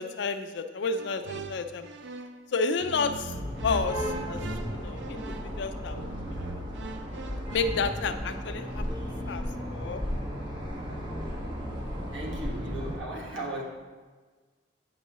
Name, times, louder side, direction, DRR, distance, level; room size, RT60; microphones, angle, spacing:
voice 1, 0.0-1.9 2.5-3.3 3.6-4.4 4.7-6.6 7.5-9.4 9.7-10.0, left 4 dB, 65° left, 8 dB, 0.4 m, -31 dB
sound 1, 1.0-2.5 2.8-7.6, right 4 dB, 65° right, 0.5 m, -42 dB
sound 2, 3.3-13.0, equal, 25° right, 1.5 m, -34 dB
voice 2, 12.1-13.6, right 1 dB, 80° right, -2 dB, 1.5 m, -36 dB
9.2 x 5.4 x 3.0 m, 1.4 s
head